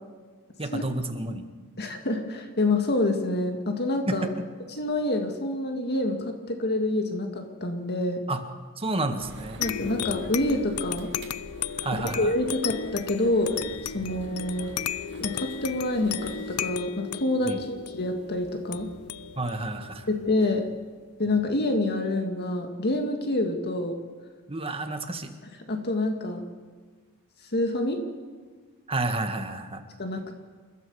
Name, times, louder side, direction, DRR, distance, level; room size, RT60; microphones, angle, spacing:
voice 1, 0.6-1.4 4.1-4.3 8.3-8.4 8.8-9.6 11.8-12.3 14.0-14.2 17.5-17.6 19.3-20.1 21.3-21.4 24.5-25.3 28.9-29.8, right 2 dB, 25° right, 6 dB, 1.7 m, -30 dB
voice 2, 1.8-4.3 4.7-8.2 9.6-11.1 11.9-14.7 15.2-18.9 20.1-20.7 21.2-24.0 25.7-26.4 27.5-28.0 30.0-30.3, left 2 dB, 50° left, 4 dB, 2.0 m, -27 dB
sound 1, 9.2-16.7, right 1 dB, 55° right, 2.1 m, -46 dB
sound 2, 9.6-20.7, left 9 dB, 75° left, 0.6 m, -35 dB
29.0 x 13.0 x 7.1 m, 1.4 s
head